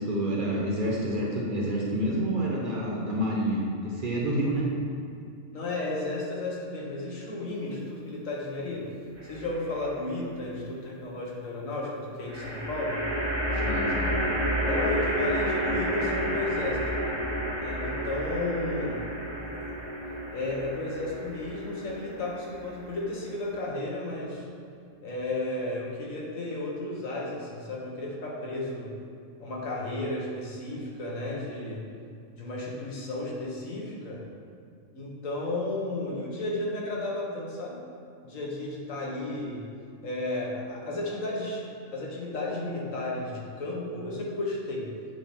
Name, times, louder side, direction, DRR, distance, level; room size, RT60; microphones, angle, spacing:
voice 1, 0.0-4.7 13.5-14.1, right 1 dB, 45° right, -4 dB, 0.9 m, -28 dB
voice 2, 5.5-8.9 9.2-13.0 14.7-16.8 17.6-19.1 19.4-19.7 20.3-24.4 25.0-28.9 29.4-31.8 32.4-34.2 34.9-37.8 38.2-39.6 40.0-41.6 41.9-44.9, left 2 dB, 75° left, -3 dB, 1.5 m, -33 dB
sound 1, 9.2-9.8 12.3-23.7, equal, 25° right, 0.6 m, -31 dB
7.9 x 3.3 x 4.2 m, 2.5 s
omnidirectional pair, 1.4 m